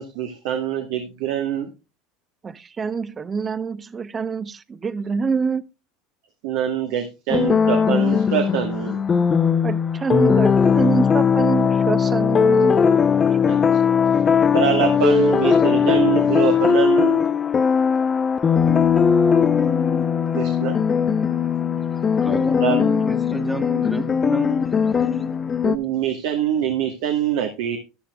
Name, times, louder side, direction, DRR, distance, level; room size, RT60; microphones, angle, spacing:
voice 1, 0.0-1.7 6.4-9.0 13.4-13.6 14.5-17.3 20.3-20.8 22.6-22.9 25.6-27.8, right 10 dB, 70° right, 1.3 m, -24 dB
voice 2, 2.4-5.6 9.6-12.8, right 5 dB, 25° right, 0.6 m, -25 dB
sound 1, 7.3-25.8, left 6 dB, 30° left, 0.7 m, -19 dB
voice 3, 22.2-24.8, equal, ahead, 1.3 m, -29 dB
14.0 x 10.5 x 2.3 m
supercardioid pair, 100°, 0 cm